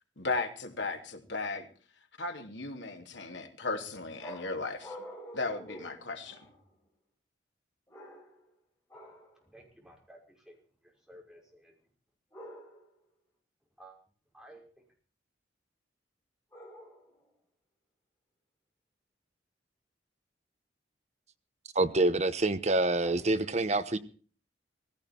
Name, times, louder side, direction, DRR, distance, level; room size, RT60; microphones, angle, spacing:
voice 1, 0.2-1.7 2.2-5.0 5.3-6.4, left 3 dB, 80° left, 2.8 m, -36 dB
sound 1, 4.2-6.7 7.9-8.5 8.9-9.4 12.3-13.0 16.5-17.2, equal, 15° left, 5.7 m, -48 dB
voice 2, 9.5-10.2 10.5-10.6 11.1-11.7 13.8-13.9 14.3-14.6 23.0-23.2, right 1 dB, 5° right, 5.6 m, -52 dB
voice 3, 21.7-24.0, right 2 dB, 35° right, 1.0 m, -26 dB
18.0 x 16.5 x 4.5 m
head